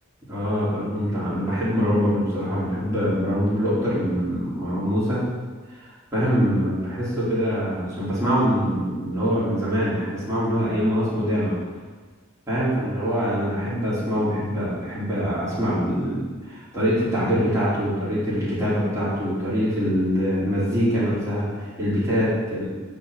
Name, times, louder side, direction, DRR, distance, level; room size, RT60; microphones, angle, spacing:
voice 1, 0.3-5.3 5.7-11.5 12.5-22.6, equal, 15° right, -11 dB, 4.4 m, -24 dB
12.5 x 4.9 x 8.6 m, 1.4 s
head